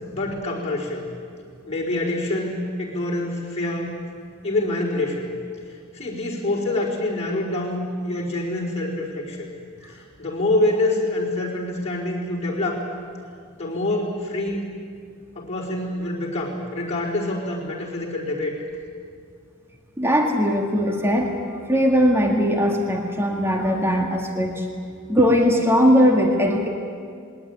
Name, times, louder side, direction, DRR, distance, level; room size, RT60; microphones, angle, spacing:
voice 1, 0.1-1.1 1.7-3.9 4.4-5.3 5.9-9.5 9.9-12.8 13.6-14.7 15.3-18.5, left 2 dB, 30° left, -4 dB, 4.6 m, -26 dB
voice 2, 20.0-21.3 21.6-24.7 25.1-26.7, equal, 10° right, 1 dB, 2.0 m, -19 dB
21.0 x 18.5 x 9.8 m, 2.2 s
head